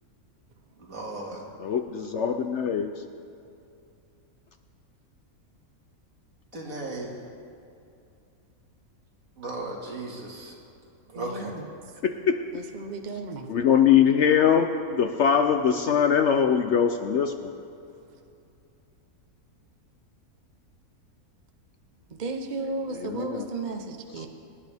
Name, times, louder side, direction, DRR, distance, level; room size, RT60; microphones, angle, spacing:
voice 1, 0.8-1.5 6.5-7.1 9.4-10.5 11.1-11.6, right 2 dB, 65° right, -2 dB, 2.4 m, -36 dB
voice 2, 1.6-3.0 12.0-12.4 13.5-17.5 23.0-23.4 24.2-24.3, left 8 dB, 60° left, 7 dB, 0.8 m, -22 dB
voice 3, 11.1-11.7 12.5-13.5 22.1-24.3, right 3 dB, 35° right, 4 dB, 0.8 m, -34 dB
24.5 x 10.5 x 3.5 m, 2.6 s
omnidirectional pair, 1.6 m